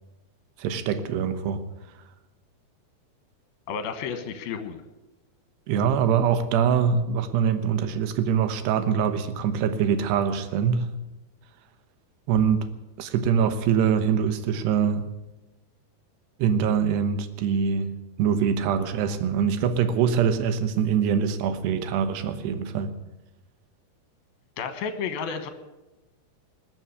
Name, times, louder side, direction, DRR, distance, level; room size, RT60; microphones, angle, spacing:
voice 1, 0.6-1.6 5.7-10.9 12.3-12.7 13.0-15.1 16.4-17.9 18.2-22.9, right 7 dB, 85° right, 10 dB, 3.2 m, -24 dB
voice 2, 3.7-4.8 24.6-25.5, left 6 dB, 70° left, 9 dB, 3.1 m, -31 dB
20.0 x 7.1 x 9.4 m, 1.0 s
omnidirectional pair, 4.7 m